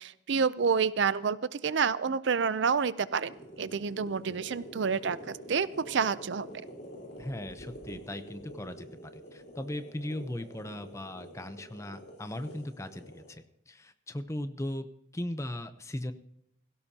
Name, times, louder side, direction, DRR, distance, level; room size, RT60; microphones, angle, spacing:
voice 1, 0.0-6.5, right 6 dB, 70° right, 16 dB, 0.5 m, -29 dB
sound 1, 3.3-13.3, equal, 55° left, 3.9 m, -47 dB
voice 2, 7.2-14.9 15.1-16.1, left 1 dB, 15° left, 10 dB, 0.7 m, -38 dB
17.0 x 17.0 x 2.8 m, 0.77 s
head